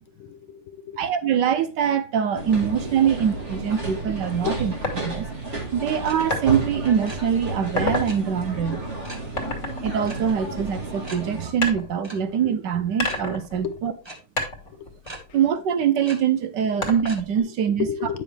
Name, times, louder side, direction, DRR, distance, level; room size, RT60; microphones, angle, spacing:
voice 1, 0.2-1.0 3.0-3.1 4.4-4.6 5.0-5.1 9.2-9.3 9.6-9.7 13.6-13.8 14.7-14.9 17.4-17.5 17.8-18.2, left 8 dB, 80° left, 1.7 m, -32 dB
voice 2, 1.0-4.7 5.0-5.3 5.7-8.8 9.8-13.9 15.3-17.9, right 8 dB, 70° right, 1.4 m, -23 dB
sound 1, 2.3-11.5, right 2 dB, 35° right, 2.1 m, -32 dB
sound 2, 4.8-5.0 6.3-6.5 7.0-7.2 7.6-8.1 9.4-10.8 11.6-12.5 13.0-14.1 14.4-16.0 16.8-17.4, left 2 dB, 40° left, 2.3 m, -30 dB
sound 3, 6.0-6.2 6.4-6.6 6.9-7.2 8.0-8.2 9.0-9.3 10.0-10.2 10.5-10.6 11.0-11.2 12.0-12.2 13.0-13.2 14.0-14.1 15.0-15.2 16.0-16.2 17.0-17.2, right 2 dB, 15° right, 1.3 m, -39 dB
9.5 x 6.0 x 3.3 m
omnidirectional pair, 2.1 m